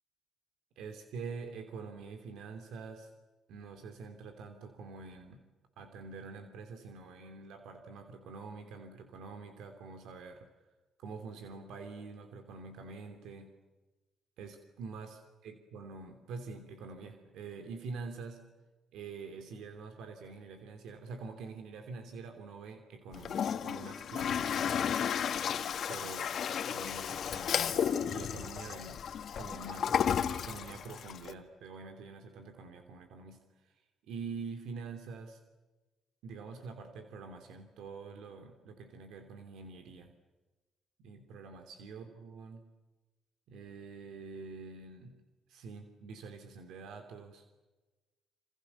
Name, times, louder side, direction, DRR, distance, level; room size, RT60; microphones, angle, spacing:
voice 1, 0.8-3.1 3.5-5.4 5.8-10.5 11.0-13.5 14.4-18.4 18.9-24.9 25.9-26.3 26.6-29.0 29.4-30.0 30.3-33.7 34.1-35.4 36.2-40.1 41.0-42.7 43.5-45.2 45.5-47.4, right 4 dB, 85° right, 6 dB, 3.1 m, -46 dB
Toilet flush, 23.1-31.3, left 8 dB, 60° left, 1.8 m, -33 dB
28.0 x 27.5 x 7.0 m, 1.2 s
cardioid pair, 90°, 0 cm